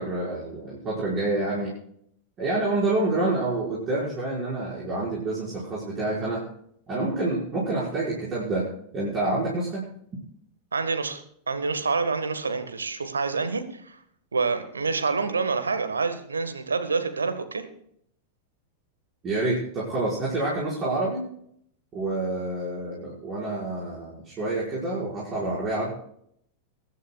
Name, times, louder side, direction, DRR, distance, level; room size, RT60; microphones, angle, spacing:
voice 1, 0.0-1.7 2.4-6.4 6.9-8.7 8.9-9.9 19.2-21.3 21.9-25.9, right 2 dB, 25° right, -7 dB, 5.4 m, -28 dB
voice 2, 10.7-14.0 14.3-17.6, right 4 dB, 75° right, 8 dB, 1.6 m, -27 dB
23.0 x 11.5 x 2.4 m, 0.68 s
figure-of-eight pair, 90°, 0 cm